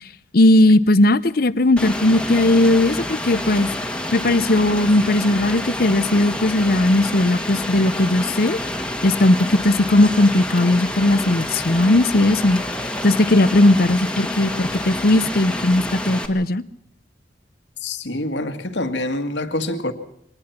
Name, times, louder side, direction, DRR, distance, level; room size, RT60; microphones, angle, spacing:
voice 1, 0.3-3.7 4.1-8.6 9.0-12.6 13.0-16.6, left 1 dB, 55° left, 0.8 m, -17 dB
Rain, 1.8-16.3, left 1 dB, 5° left, 1.8 m, -28 dB
voice 2, 17.8-19.9, left 1 dB, 80° left, 2.0 m, -26 dB
24.0 x 19.5 x 5.9 m
head